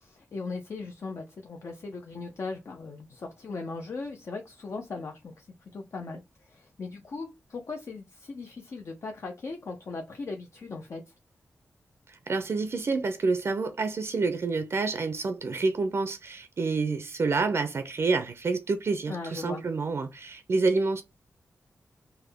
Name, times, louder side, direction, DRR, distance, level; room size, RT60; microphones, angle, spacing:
voice 1, 0.0-11.1 19.1-19.7, left 3 dB, 60° left, 0.5 m, -38 dB
voice 2, 12.3-21.0, right 3 dB, 55° right, 0.5 m, -28 dB
3.5 x 2.2 x 3.3 m
wide cardioid pair, 85°, 5 cm